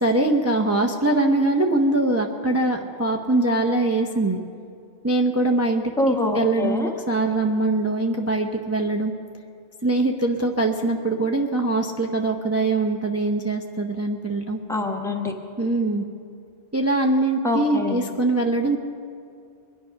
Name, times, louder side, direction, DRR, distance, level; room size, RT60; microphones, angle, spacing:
voice 1, 0.0-4.4 5.0-5.8 6.3-9.1 9.8-14.6 15.6-16.0 16.7-18.8, right 2 dB, 15° right, 2 dB, 0.7 m, -22 dB
voice 2, 6.0-6.9 14.7-15.3 17.4-18.1, left 2 dB, 5° left, 2 dB, 1.2 m, -24 dB
22.5 x 10.0 x 5.8 m, 2.4 s
omnidirectional pair, 1.2 m